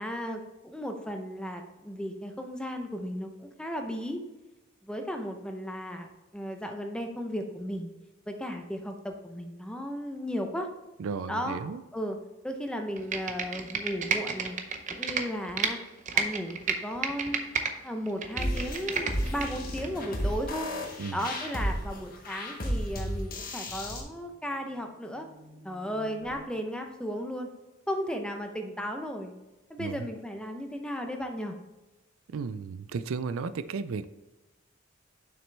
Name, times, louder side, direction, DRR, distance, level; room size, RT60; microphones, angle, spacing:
voice 1, 0.0-4.2 4.8-7.9 8.3-10.7 11.3-11.6 11.9-12.2 12.4-14.6 14.9-15.8 16.1-17.5 17.8-20.7 21.1-25.3 25.6-27.5 27.9-29.3 29.7-31.5, equal, 5° left, 4 dB, 0.6 m, -35 dB
voice 2, 11.0-11.8 21.0-21.3 29.8-30.1 32.3-34.1, right 5 dB, 85° right, 13 dB, 0.4 m, -34 dB
Computer keyboard, 13.0-15.7 16.1-17.7 18.1-19.5 19.8-19.9, right 5 dB, 35° right, 0.6 m, -30 dB
sound 1, 18.3-21.4 23.7-26.4, left 2 dB, 30° left, 2.2 m, -50 dB
sound 2, 18.4-24.0, equal, 45° left, 1.3 m, -33 dB
7.2 x 6.1 x 3.3 m, 1.1 s
head